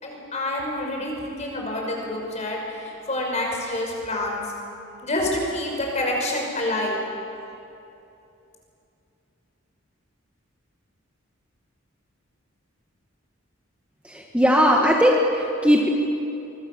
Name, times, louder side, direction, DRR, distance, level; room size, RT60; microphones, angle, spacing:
voice 1, 0.0-4.4 5.0-7.0, left 1 dB, 35° left, 0 dB, 5.7 m, -27 dB
voice 2, 14.0-15.9, equal, 5° right, 0 dB, 1.6 m, -19 dB
25.0 x 24.5 x 7.0 m, 2.7 s
head